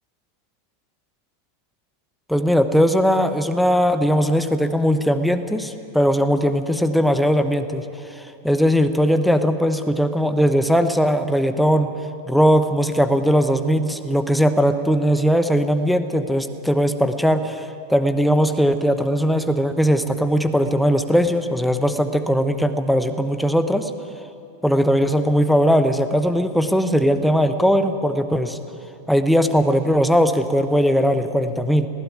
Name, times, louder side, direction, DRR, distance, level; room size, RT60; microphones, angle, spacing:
voice 1, 2.3-7.8 8.1-11.9 12.3-23.9 24.6-28.6 29.1-31.9, equal, ahead, 9 dB, 1.1 m, -19 dB
20.0 x 16.5 x 9.3 m, 2.7 s
figure-of-eight pair, 90°, 0 cm